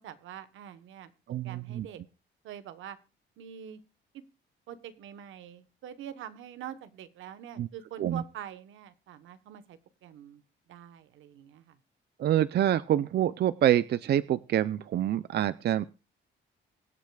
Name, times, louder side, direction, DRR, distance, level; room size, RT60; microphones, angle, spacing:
voice 1, 0.0-1.1 1.4-2.0 2.4-3.0 3.4-3.8 4.1-4.2 4.7-10.4 10.7-11.8, right 10 dB, 80° right, 12 dB, 1.1 m, -45 dB
voice 2, 1.3-1.9 7.6-7.7 8.0-8.2 12.2-15.9, right 11 dB, 55° right, 15 dB, 0.5 m, -26 dB
24.0 x 8.2 x 2.3 m, 0.31 s
cardioid pair, 90°, 20 cm